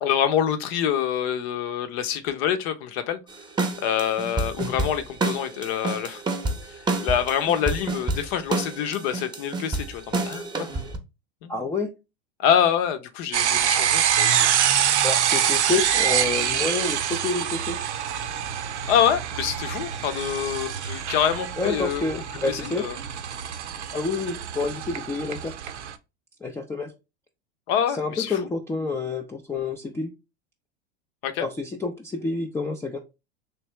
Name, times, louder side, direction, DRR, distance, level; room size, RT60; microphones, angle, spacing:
voice 1, 0.0-3.2 3.8-6.2 6.7-10.7 11.4-11.5 12.4-14.5 18.9-22.0 22.5-22.9 27.7-28.4 31.2-31.5, left 9 dB, 60° left, 0.8 m, -26 dB
sound 1, 3.3-11.0, right 3 dB, 15° right, 0.8 m, -29 dB
voice 2, 11.5-11.9 15.0-17.8 21.6-22.9 23.9-25.6 26.4-26.9 27.9-30.1 31.4-33.0, left 3 dB, 10° left, 0.4 m, -28 dB
sound 2, 13.3-25.9, right 9 dB, 90° right, 0.6 m, -25 dB
3.3 x 2.9 x 3.1 m
hypercardioid pair, 95°, 34 cm